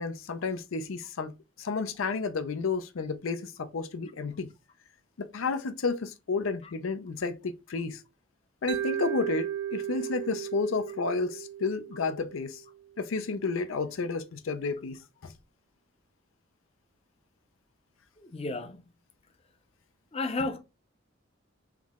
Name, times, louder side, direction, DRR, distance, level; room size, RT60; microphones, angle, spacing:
voice 1, 0.0-4.5 5.2-8.0 8.6-12.6 13.0-15.0 15.2-15.3, left 4 dB, 85° left, 0.5 m, -31 dB
Mallet percussion, 8.7-12.8, right 10 dB, 60° right, 0.6 m, -35 dB
voice 2, 18.2-18.8 20.1-20.6, left 2 dB, 30° left, 0.6 m, -32 dB
3.7 x 3.1 x 3.5 m
head